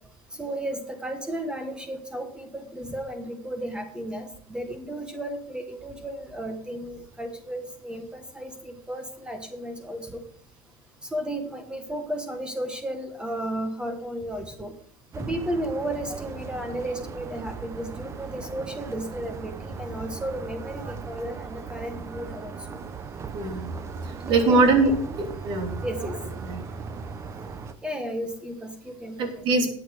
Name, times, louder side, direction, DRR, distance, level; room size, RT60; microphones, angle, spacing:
voice 1, 0.3-10.2 11.0-14.7 15.1-22.8 24.3-24.9 25.8-26.2 27.8-29.3, right 1 dB, 10° right, 6 dB, 1.3 m, -34 dB
sound 1, 15.1-27.7, right 5 dB, 30° right, 1.0 m, -37 dB
voice 2, 23.3-23.7 24.3-24.9 25.2-25.7 26.4-26.6 29.2-29.7, right 3 dB, 55° right, 3 dB, 3.3 m, -22 dB
12.0 x 8.6 x 5.0 m, 0.67 s
supercardioid pair, 130°, 10 cm